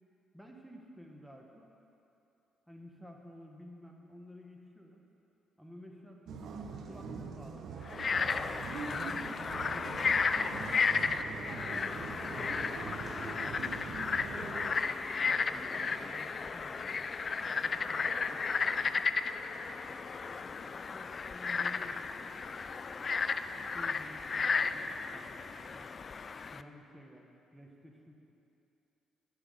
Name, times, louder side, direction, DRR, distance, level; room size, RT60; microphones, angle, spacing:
voice 1, 0.3-1.7 2.7-5.0 5.6-6.3 6.8-8.1 8.6-10.1 11.2-14.5 15.3-17.0 17.4-19.1 20.2-22.1 23.5-25.9 26.4-27.3 27.5-28.2, equal, ahead, 0 dB, 1.3 m, -53 dB
sound 1, 6.3-14.8, right 5 dB, 70° right, 0.7 m, -43 dB
Frog, 7.9-26.6, left 5 dB, 40° left, 0.3 m, -34 dB
sound 2, 9.9-16.3, left 1 dB, 15° left, 2.3 m, -53 dB
11.5 x 10.0 x 4.0 m, 2.8 s
cardioid pair, 90°, 0 cm